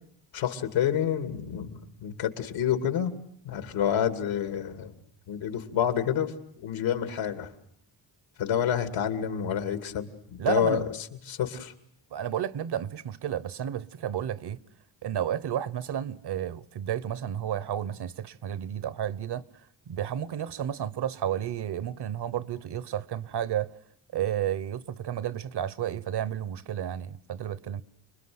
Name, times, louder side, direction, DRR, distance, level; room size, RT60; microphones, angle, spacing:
voice 1, 0.3-3.2 3.4-4.9 5.3-7.5 8.4-10.9 11.3-11.7, left 9 dB, 85° left, 2.8 m, -28 dB
voice 2, 10.4-10.8 12.1-14.6 15.0-19.4 19.9-23.8 24.1-27.8, right 10 dB, 60° right, 1.2 m, -32 dB
29.5 x 21.0 x 8.0 m
cardioid pair, 80°, 46 cm